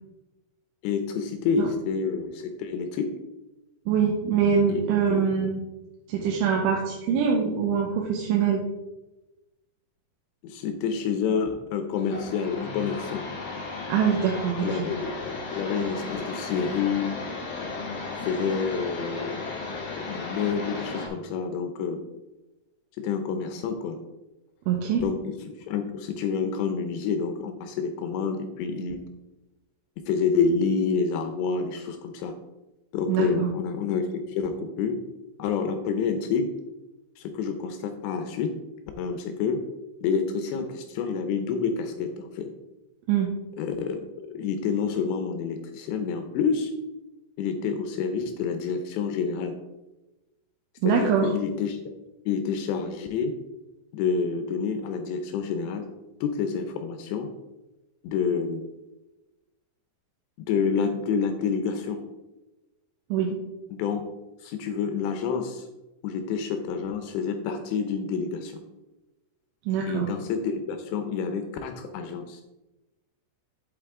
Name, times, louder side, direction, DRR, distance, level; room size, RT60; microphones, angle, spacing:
voice 1, 0.8-3.1 4.7-4.8 5.1-5.3 10.4-13.2 14.6-17.2 18.1-22.0 23.0-24.0 25.0-29.0 30.0-32.3 32.9-34.0 34.3-35.0 35.4-36.5 37.2-38.5 39.0-39.6 40.0-42.5 43.6-44.0 44.3-46.7 47.4-49.5 50.8-51.8 52.3-53.3 53.9-55.9 56.2-57.3 58.0-58.6 60.4-62.0 63.7-64.0 64.4-65.6 66.0-68.6 69.9-72.4, left 5 dB, 80° left, 6 dB, 2.7 m, -28 dB
voice 2, 3.9-5.6 6.1-8.6 13.9-14.9 24.7-25.0 33.1-33.5 43.1-43.3 50.8-51.3 63.1-63.4 69.7-70.1, right 7 dB, 85° right, 0 dB, 3.3 m, -24 dB
sound 1, 12.0-21.1, left 3 dB, 55° left, 3.6 m, -35 dB
8.2 x 7.9 x 3.7 m, 1.0 s
omnidirectional pair, 5.5 m